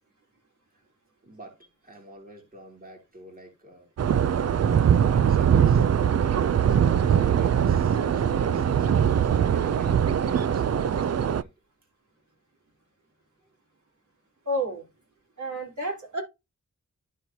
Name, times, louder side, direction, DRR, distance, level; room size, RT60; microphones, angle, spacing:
voice 1, 1.2-1.6 1.8-3.9 4.5-5.9 6.7-11.5, right 1 dB, 30° right, 2.5 m, -47 dB
sound 1, 4.0-11.4, right 8 dB, 60° right, 0.5 m, -22 dB
voice 2, 14.5-14.8 15.4-16.2, right 1 dB, 75° right, 3.8 m, -30 dB
12.5 x 4.3 x 2.8 m
wide cardioid pair, 85°, 30 cm